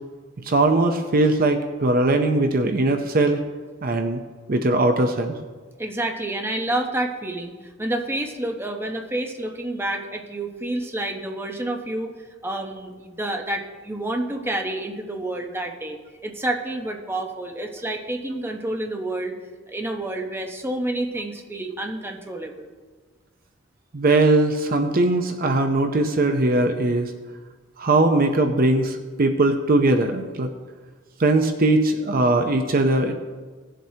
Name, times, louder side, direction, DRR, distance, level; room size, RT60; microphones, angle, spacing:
voice 1, 0.4-3.4 3.8-4.2 4.5-5.4 23.9-27.1 27.8-30.5 31.2-33.2, right 2 dB, 45° right, 6 dB, 0.6 m, -20 dB
voice 2, 5.8-12.1 12.4-19.3 19.7-22.7, right 1 dB, 10° right, 2 dB, 0.9 m, -29 dB
18.0 x 7.5 x 2.8 m, 1.4 s
head